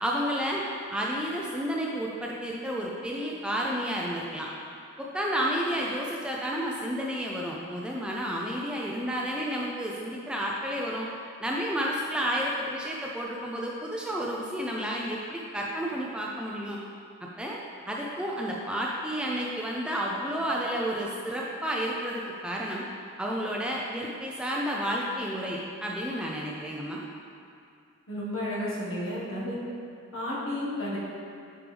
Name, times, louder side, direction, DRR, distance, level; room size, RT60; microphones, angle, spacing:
voice 1, 0.0-4.5 5.0-11.1 11.4-16.8 17.4-17.6 17.9-22.8 23.2-27.0, equal, 5° right, -3 dB, 0.5 m, -31 dB
voice 2, 28.1-29.6 30.1-31.0, left 1 dB, 75° left, -6 dB, 1.6 m, -32 dB
8.6 x 4.7 x 3.4 m, 2.4 s
head